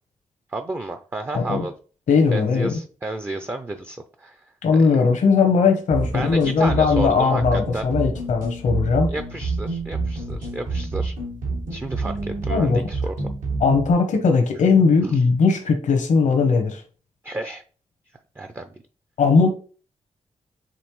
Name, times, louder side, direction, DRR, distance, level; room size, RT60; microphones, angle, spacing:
voice 1, 0.5-1.7 2.3-5.0 6.1-7.9 9.1-11.1 11.7-13.1 15.0-15.2 17.2-17.6 18.4-18.7, right 2 dB, 15° right, 7 dB, 0.4 m, -31 dB
voice 2, 1.3-1.6 2.1-2.7 4.6-9.1 12.5-12.8 13.6-16.8 19.2-19.5, left 5 dB, 75° left, 4 dB, 0.9 m, -19 dB
sound 1, 5.9-13.9, right 3 dB, 85° right, 1.6 m, -28 dB
5.1 x 3.1 x 3.1 m, 0.38 s
cardioid pair, 90°, 13 cm